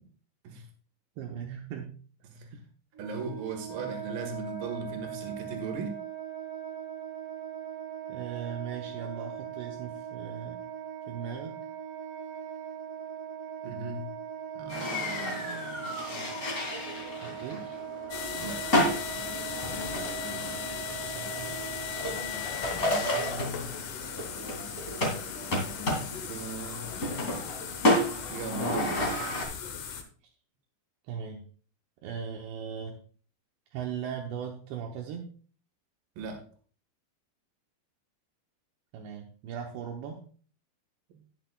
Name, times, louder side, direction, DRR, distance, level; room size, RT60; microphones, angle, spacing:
voice 1, 1.2-1.9 2.5-2.6 8.1-10.6 11.1-11.6 17.2-17.6 20.3-20.6 20.9-21.6 31.1-31.4 32.0-33.0 33.7-35.3 38.9-40.2, right 7 dB, 75° right, 1 dB, 3.1 m, -38 dB
voice 2, 2.2-2.6 3.0-6.0 13.6-14.1 14.5-15.3 17.3-17.6 18.4-19.2 22.7-23.8 25.9-26.9 28.3-29.0 36.2-36.5, right 4 dB, 60° right, 4 dB, 3.2 m, -39 dB
Wind instrument woodwind instrument, 2.9-22.4, right 9 dB, 40° right, 3.0 m, -40 dB
sound 1, 14.7-29.4, left 1 dB, 25° left, 1.7 m, -32 dB
sound 2, 18.1-30.0, left 8 dB, 75° left, 1.8 m, -37 dB
19.0 x 6.6 x 2.3 m, 0.42 s
omnidirectional pair, 5.2 m